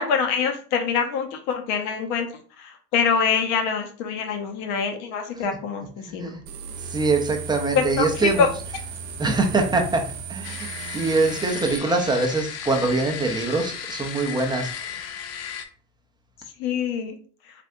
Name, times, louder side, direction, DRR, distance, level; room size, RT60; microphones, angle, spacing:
voice 1, 0.0-2.3 2.6-5.9 6.1-6.3 7.7-8.5 16.6-17.2, left 6 dB, 55° left, 5 dB, 0.9 m, -24 dB
voice 2, 6.1-6.4 6.8-8.5 9.2-10.0 10.3-15.0, right 3 dB, 10° right, 3 dB, 0.6 m, -24 dB
sound 1, 6.5-11.8, right 5 dB, 55° right, 0.8 m, -36 dB
sound 2, 10.4-15.7, left 8 dB, 35° left, 0.5 m, -35 dB
3.4 x 2.5 x 2.5 m, 0.42 s
hypercardioid pair, 85°, 47 cm